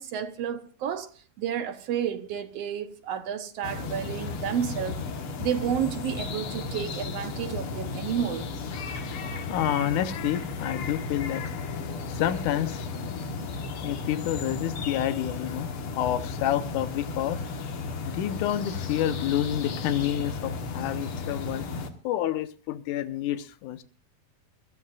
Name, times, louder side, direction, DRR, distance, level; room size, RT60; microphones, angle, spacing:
voice 1, 0.0-5.0 5.4-8.5, right 9 dB, 70° right, 1.6 m, -31 dB
sound 1, 3.6-21.9, left 4 dB, 50° left, 1.9 m, -34 dB
voice 2, 9.5-11.4 12.1-12.9 13.8-15.7 16.0-17.4 18.1-21.7 22.0-23.8, left 11 dB, 75° left, 2.3 m, -29 dB
25.0 x 13.5 x 2.5 m
omnidirectional pair, 3.9 m